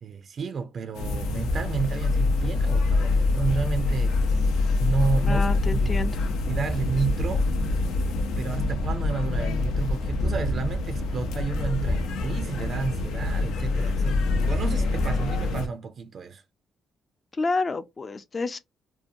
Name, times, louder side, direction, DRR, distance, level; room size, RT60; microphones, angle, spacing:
voice 1, 0.0-4.2 4.8-6.1 6.5-7.5 8.4-16.4, right 5 dB, 55° right, 0.4 m, -31 dB
sound 1, 1.0-15.7, left 3 dB, 90° left, 0.5 m, -25 dB
voice 2, 5.2-6.2 17.4-18.6, left 3 dB, 35° left, 0.4 m, -29 dB
2.7 x 2.1 x 2.5 m
cardioid pair, 90°, 0 cm